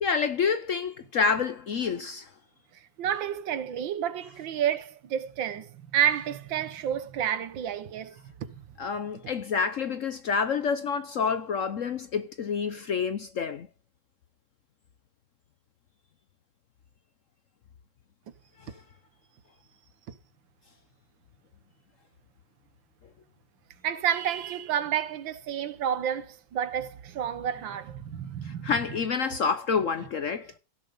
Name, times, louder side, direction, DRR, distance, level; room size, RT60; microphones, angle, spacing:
voice 1, 0.0-2.3 8.8-13.7 18.6-18.7 28.4-30.5, left 5 dB, 60° left, 0.9 m, -28 dB
voice 2, 3.0-8.6 23.8-28.7, right 9 dB, 80° right, 1.8 m, -30 dB
16.5 x 7.0 x 5.4 m
omnidirectional pair, 2.0 m